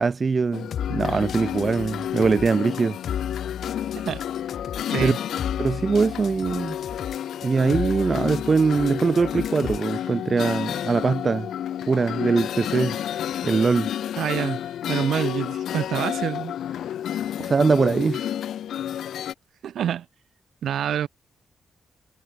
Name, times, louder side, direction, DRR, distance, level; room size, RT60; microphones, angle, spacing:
voice 1, 0.0-3.0 5.0-5.1 5.6-6.8 7.4-11.5 11.9-13.0 13.4-13.9 17.4-18.3, right 4 dB, 30° right, 0.4 m, -22 dB
sound 1, 0.5-19.3, left 10 dB, 80° left, 0.4 m, -30 dB
sound 2, 0.7-9.9, left 9 dB, 60° left, 3.7 m, -35 dB
voice 2, 14.2-14.6 14.9-16.5 19.6-20.0 20.6-21.1, right 9 dB, 70° right, 0.7 m, -26 dB
wide cardioid pair, 155°, 0 cm